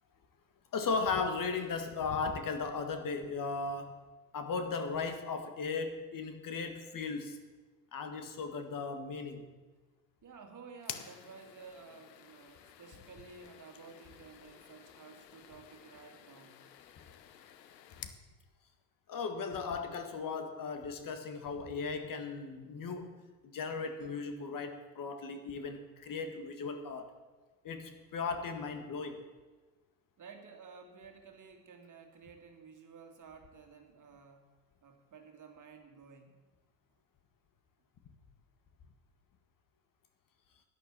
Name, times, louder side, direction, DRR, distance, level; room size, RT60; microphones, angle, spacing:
voice 1, 0.7-4.0 4.3-7.4 7.9-9.5 18.0-18.1 19.1-23.1 23.4-27.1 27.6-29.2, left 4 dB, 40° left, 8 dB, 1.7 m, -36 dB
voice 2, 10.2-16.6 30.2-34.4 34.8-36.4, right 5 dB, 40° right, 4 dB, 2.5 m, -53 dB
sound 1, 10.8-18.2, left 10 dB, 90° left, 1.0 m, -51 dB
11.0 x 10.5 x 7.4 m, 1.3 s
hypercardioid pair, 75°, 49 cm